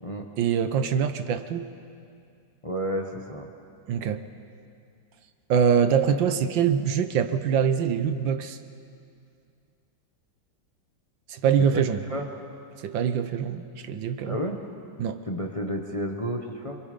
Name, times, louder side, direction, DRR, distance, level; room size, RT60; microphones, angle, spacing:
voice 1, 0.4-1.7 3.9-4.2 5.5-8.6 11.3-12.0 12.8-14.4 15.0-15.2, right 7 dB, 75° right, 9 dB, 1.6 m, -24 dB
voice 2, 2.6-3.5 11.6-11.8 12.1-12.3 14.2-14.6 15.3-16.8, equal, 20° left, 2 dB, 1.0 m, -31 dB
26.5 x 23.0 x 5.2 m, 2.4 s
omnidirectional pair, 2.1 m